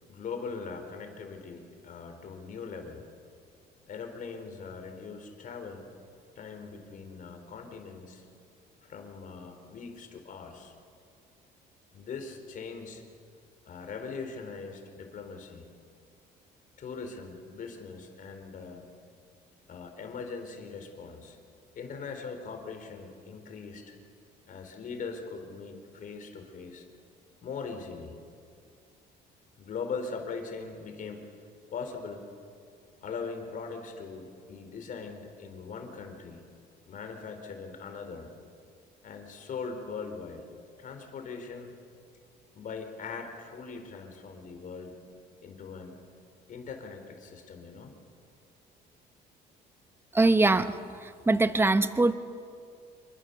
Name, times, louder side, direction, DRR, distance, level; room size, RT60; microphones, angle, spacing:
voice 1, 0.1-3.0 3.9-5.8 6.4-8.2 8.8-10.7 11.9-13.0 13.7-15.7 16.8-18.9 19.7-21.4 21.7-23.9 24.5-26.9 27.4-28.1 29.6-31.3 31.7-32.3 33.0-36.4 36.9-38.3 39.0-40.4 40.8-41.8 42.5-45.0 45.4-46.0 46.5-47.9, left 5 dB, 50° left, 5 dB, 4.2 m, -40 dB
voice 2, 50.1-52.1, right 2 dB, 15° right, 11 dB, 1.1 m, -23 dB
27.0 x 23.5 x 7.0 m, 2.3 s
cardioid pair, 110°, 17 cm